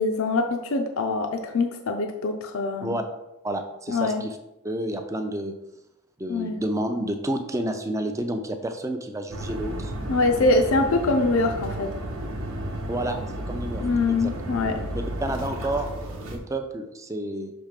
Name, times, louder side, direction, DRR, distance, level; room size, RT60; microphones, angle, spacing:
voice 1, 0.0-3.0 3.9-4.2 6.3-6.6 10.1-11.9 13.8-14.8, left 3 dB, 70° left, 5 dB, 0.5 m, -24 dB
voice 2, 3.4-4.4 4.6-5.6 6.2-9.9 12.9-13.2 13.5-14.3 14.9-17.5, right 1 dB, 15° right, 6 dB, 0.5 m, -30 dB
sound 1, 9.3-16.4, right 1 dB, 75° right, 1.0 m, -33 dB
6.1 x 3.2 x 5.1 m, 0.91 s
head